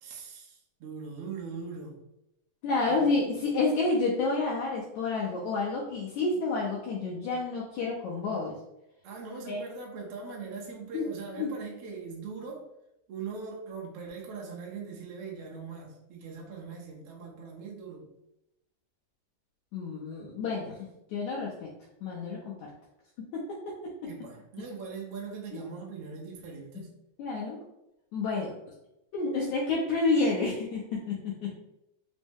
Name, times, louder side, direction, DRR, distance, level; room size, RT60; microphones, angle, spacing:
voice 1, 0.0-2.0 2.9-3.2 9.0-12.7 13.1-18.1 24.0-26.9, right 5 dB, 85° right, -1 dB, 1.3 m, -41 dB
voice 2, 2.6-8.5 9.5-9.6 10.9-11.0 11.4-11.5 19.7-20.8 21.1-21.7 22.0-22.5 23.3-23.7 25.5-25.7 27.2-27.6 28.1-28.5 29.1-31.5, left 3 dB, 75° left, -4 dB, 1.7 m, -29 dB
5.3 x 2.0 x 3.4 m, 0.85 s
omnidirectional pair, 3.9 m